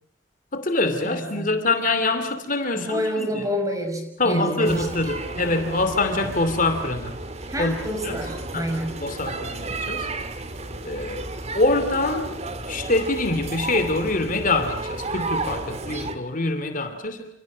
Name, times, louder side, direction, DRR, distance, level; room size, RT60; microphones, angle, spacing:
voice 1, 0.5-3.4 4.2-7.2 7.6-7.7 8.0-8.2 8.5-8.7 9.0-10.1 10.8-11.2 11.5-12.3 12.7-17.3, left 2 dB, 45° left, 8 dB, 2.7 m, -24 dB
voice 2, 1.0-1.5 2.7-4.9 7.5-9.0, equal, 20° right, 5 dB, 6.3 m, -28 dB
sound 1, 4.6-16.2, right 2 dB, 35° right, 2.2 m, -33 dB
29.0 x 27.0 x 6.3 m, 0.75 s
head